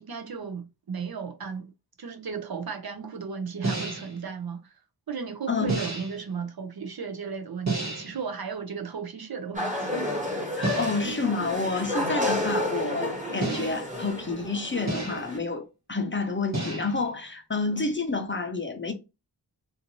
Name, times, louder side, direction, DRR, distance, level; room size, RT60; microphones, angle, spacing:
voice 1, 0.0-1.7 2.0-4.7 5.1-10.1, right 5 dB, 60° right, 0.6 m, -35 dB
sound 1, 3.6-4.2 5.7-6.3 7.7-8.2 10.6-11.2 13.4-14.0 14.9-15.4 16.5-17.1, right 2 dB, 40° right, 1.3 m, -31 dB
voice 2, 5.5-5.8 10.6-18.9, left 3 dB, 30° left, 0.6 m, -29 dB
sound 2, 9.5-15.4, left 1 dB, 15° right, 1.3 m, -31 dB
2.5 x 2.5 x 2.9 m
wide cardioid pair, 75°, 42 cm